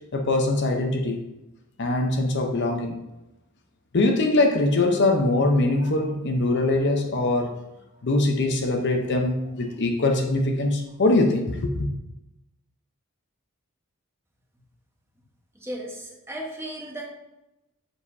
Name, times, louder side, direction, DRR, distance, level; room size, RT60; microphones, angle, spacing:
voice 1, 0.1-1.2 1.8-3.0 3.9-7.6 8.0-11.9, left 2 dB, 50° left, 3 dB, 0.8 m, -22 dB
voice 2, 15.5-17.0, right 1 dB, 10° right, -1 dB, 1.2 m, -35 dB
7.4 x 6.5 x 2.7 m, 0.96 s
head